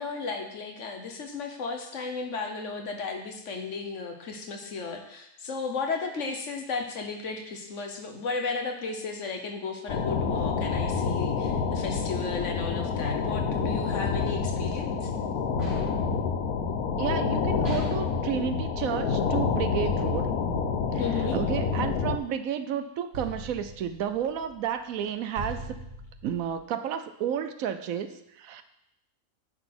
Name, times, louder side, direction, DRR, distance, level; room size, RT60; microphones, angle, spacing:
voice 1, 0.0-15.1 21.0-21.4, left 4 dB, 60° left, 4 dB, 1.3 m, -34 dB
sound 1, 9.9-22.2, left 5 dB, 90° left, 1.4 m, -28 dB
sound 2, 15.6-16.1 17.6-18.1 21.0-21.6 23.1-26.5, equal, 55° right, 2.7 m, -42 dB
voice 2, 17.0-20.3 20.9-25.8 26.2-28.6, right 9 dB, 75° right, 10 dB, 1.0 m, -31 dB
9.6 x 4.0 x 6.0 m, 0.81 s
omnidirectional pair, 1.5 m